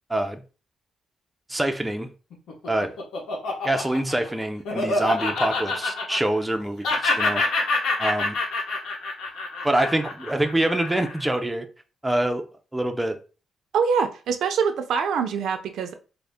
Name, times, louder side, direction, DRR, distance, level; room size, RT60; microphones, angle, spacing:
voice 1, 0.1-0.4 1.5-2.1 2.7-2.9 3.6-7.4 8.0-8.4 9.6-11.7 12.0-12.5 12.7-13.2, right 1 dB, 5° right, 0.4 m, -25 dB
Laughter, 2.3-6.6 6.8-11.3, left 3 dB, 80° left, 1.0 m, -27 dB
voice 2, 13.7-15.9, right 6 dB, 80° right, 0.5 m, -24 dB
3.8 x 2.1 x 3.4 m
cardioid pair, 115°, 0 cm